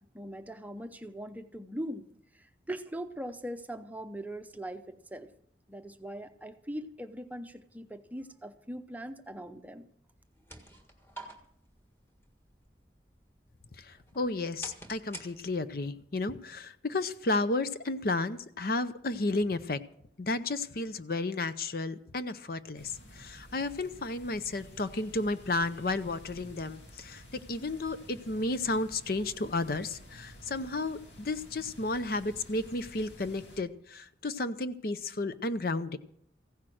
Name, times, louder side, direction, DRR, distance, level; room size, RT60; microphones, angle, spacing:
voice 1, 0.1-2.1 2.3-5.3 5.7-9.9, right 1 dB, 10° right, 8 dB, 0.6 m, -41 dB
sound 1, 10.1-15.9, right 1 dB, 15° left, 1.6 m, -50 dB
voice 2, 14.2-19.8 20.2-27.2 27.5-36.0, left 2 dB, 55° left, 12 dB, 0.6 m, -32 dB
sound 2, 22.8-33.6, equal, 85° left, 2.6 m, -52 dB
15.5 x 10.5 x 6.3 m, 0.68 s
head